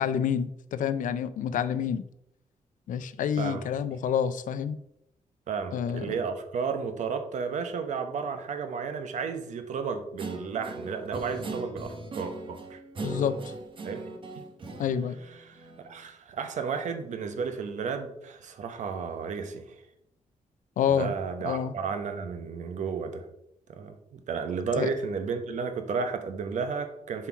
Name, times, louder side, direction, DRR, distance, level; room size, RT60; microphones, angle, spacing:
voice 1, 0.0-2.0 2.9-4.8 5.7-6.1 13.0-13.5 14.8-15.2 20.8-21.1 21.4-21.7 24.8-24.9, left 8 dB, 70° left, 13 dB, 0.5 m, -28 dB
voice 2, 5.5-12.8 13.8-14.1 14.4-14.5 15.4-19.7 20.9-23.3 23.7-27.3, right 5 dB, 60° right, 7 dB, 0.9 m, -33 dB
Guitar, 10.2-16.0, right 2 dB, 40° right, 1.1 m, -39 dB
7.2 x 4.6 x 4.7 m, 0.79 s
wide cardioid pair, 175°, 14 cm